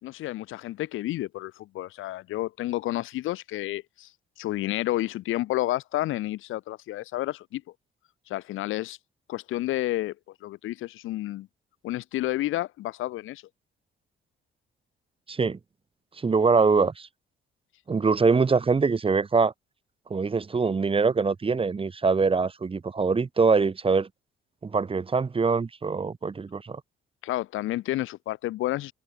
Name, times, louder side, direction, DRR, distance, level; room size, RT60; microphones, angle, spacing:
voice 1, 0.0-4.1 4.4-7.6 8.3-9.0 9.3-10.1 10.4-11.5 11.8-13.4 27.2-28.9, left 16 dB, 90° left, 2.6 m, -30 dB
voice 2, 15.3-15.6 16.2-17.1 17.9-19.5 20.1-24.1 24.6-26.8, right 4 dB, 30° right, 1.1 m, -23 dB
open air
cardioid pair, 90°, 20 cm